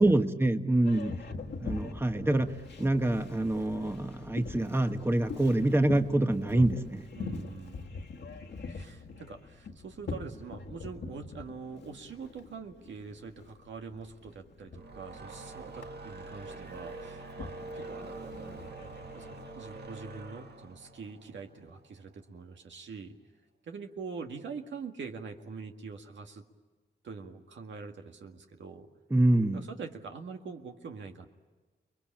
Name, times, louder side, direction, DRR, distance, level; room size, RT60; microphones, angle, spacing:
voice 1, 0.0-1.2 1.6-7.0 29.1-29.6, right 1 dB, 10° right, 7 dB, 1.2 m, -26 dB
Boat Water vehicle, 0.8-19.9, left 4 dB, 70° left, 1.7 m, -44 dB
voice 2, 1.0-1.5 7.2-7.9 8.7-23.1 23.6-26.4 27.0-28.9 29.5-31.3, right 5 dB, 85° right, 4 dB, 1.9 m, -44 dB
sound 1, 14.6-22.0, right 3 dB, 65° right, 1.7 m, -45 dB
29.5 x 21.0 x 8.8 m, 1.3 s
cardioid pair, 85°, 19 cm